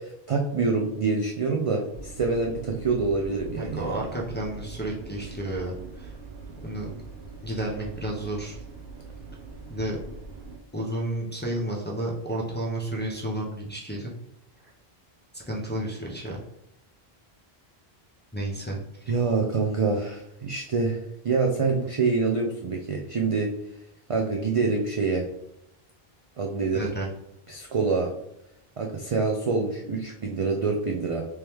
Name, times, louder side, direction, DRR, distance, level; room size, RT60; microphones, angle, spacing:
voice 1, 0.0-4.0 19.1-23.5 24.1-25.3 26.4-26.9 27.5-28.1 28.8-31.2, right 4 dB, 60° right, 1 dB, 0.3 m, -26 dB
sound 1, 1.9-10.6, right 4 dB, 75° right, 0.9 m, -42 dB
voice 2, 3.6-6.1 6.6-6.9 7.4-8.6 9.7-10.0 10.7-14.1 15.3-16.4 18.3-19.0 26.7-27.1, right 1 dB, 15° left, -3 dB, 0.4 m, -31 dB
3.1 x 3.0 x 3.4 m, 0.79 s
omnidirectional pair, 1.1 m